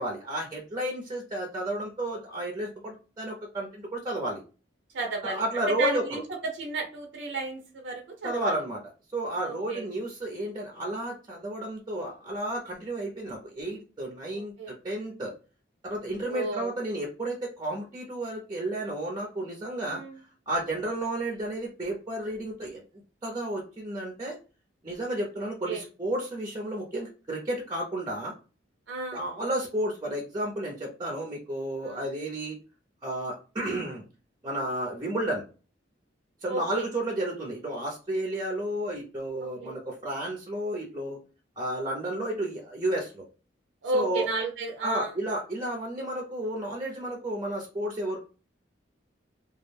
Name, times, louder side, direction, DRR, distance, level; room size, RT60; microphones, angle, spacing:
voice 1, 0.0-4.4 5.2-6.0 8.2-8.8 9.1-15.3 15.8-22.8 23.2-24.3 24.8-28.3 29.1-32.6 33.0-34.0 34.4-35.4 36.4-41.2 41.6-43.2 43.9-44.3 44.8-48.2, right 1 dB, 25° right, -1 dB, 0.5 m, -32 dB
voice 2, 4.9-6.2 6.5-8.6 9.4-9.8 14.3-14.7 16.3-16.7 19.9-20.2 25.7-25.8 28.9-29.2 31.8-32.0 36.5-36.8 39.6-39.7 43.8-45.1, right 3 dB, 80° right, 1 dB, 0.5 m, -32 dB
2.3 x 2.1 x 3.2 m, 0.35 s
head